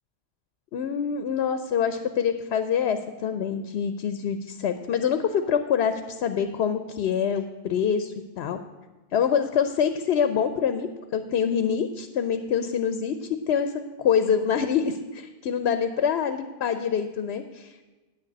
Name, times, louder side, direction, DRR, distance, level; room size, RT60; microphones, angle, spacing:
voice 1, 0.7-8.6 9.1-17.8, left 7 dB, 85° left, 9 dB, 0.9 m, -25 dB
9.1 x 6.6 x 8.3 m, 1.2 s
omnidirectional pair, 1.0 m